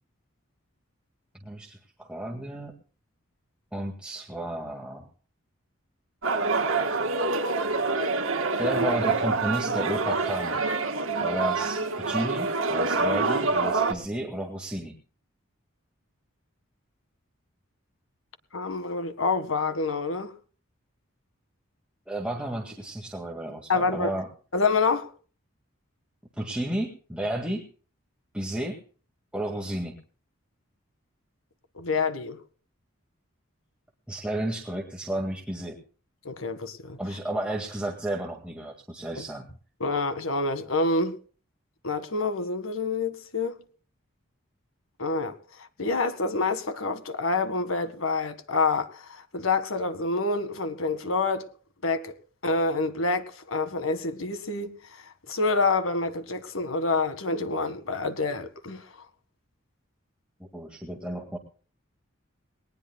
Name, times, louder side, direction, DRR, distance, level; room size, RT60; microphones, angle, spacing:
voice 1, 1.4-2.7 3.7-5.1 8.6-10.6 11.2-14.9 22.1-24.3 26.4-27.7 28.3-28.8 29.3-30.0 34.1-35.8 37.0-39.5 60.5-61.4, right 1 dB, 5° right, 1.9 m, -32 dB
sound 1, 6.2-13.9, right 3 dB, 80° right, 2.3 m, -26 dB
voice 2, 18.5-20.3 23.7-24.1 24.5-25.1 31.8-32.4 36.3-37.0 39.8-41.2 41.8-43.6 45.0-45.3 45.8-51.5 51.8-52.1 52.4-54.8 55.3-58.8, left 3 dB, 80° left, 1.8 m, -27 dB
21.0 x 19.5 x 2.3 m
head